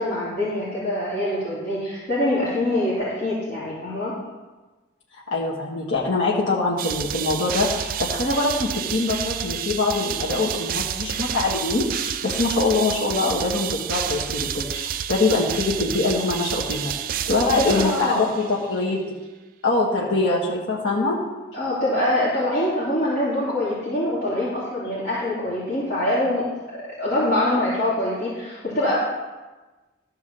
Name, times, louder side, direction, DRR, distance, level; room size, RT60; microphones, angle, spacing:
voice 1, 0.0-4.1 17.6-18.3 21.5-26.5 27.0-29.0, left 1 dB, 55° left, -11 dB, 3.0 m, -24 dB
voice 2, 5.1-16.9 17.3-19.0 19.6-21.2, left 3 dB, 75° left, -4 dB, 1.5 m, -23 dB
sound 1, 6.8-18.7, right 9 dB, 45° right, 0.4 m, -29 dB
12.5 x 4.6 x 6.8 m, 1.2 s
head